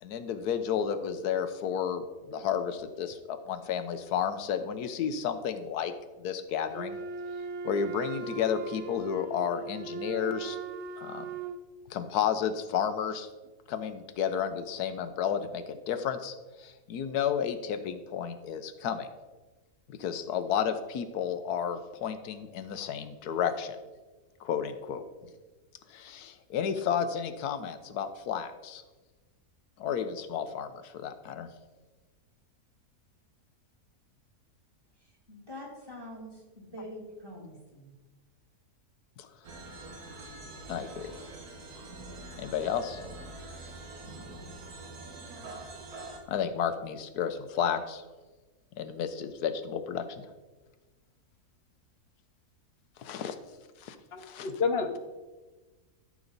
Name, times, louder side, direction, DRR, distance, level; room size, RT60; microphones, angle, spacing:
voice 1, 0.0-5.9 6.2-7.0 7.6-10.6 11.0-11.3 11.9-13.3 13.7-19.1 19.9-23.8 24.4-25.0 25.9-28.8 29.8-31.5 39.2-39.3 40.7-41.2 42.4-43.0 46.3-48.0 48.8-50.3 53.0-53.4 53.8-54.5, left 8 dB, 90° left, 10 dB, 1.3 m, -32 dB
Wind instrument woodwind instrument, 6.7-11.6, right 4 dB, 60° right, 0.8 m, -39 dB
voice 2, 35.0-37.9, equal, 15° right, -3 dB, 2.5 m, -45 dB
sound 1, 39.4-46.2, right 2 dB, 75° right, 1.8 m, -45 dB
voice 3, 54.1-55.1, left 5 dB, 45° left, 6 dB, 1.0 m, -30 dB
12.5 x 6.3 x 4.0 m, 1.2 s
omnidirectional pair, 1.6 m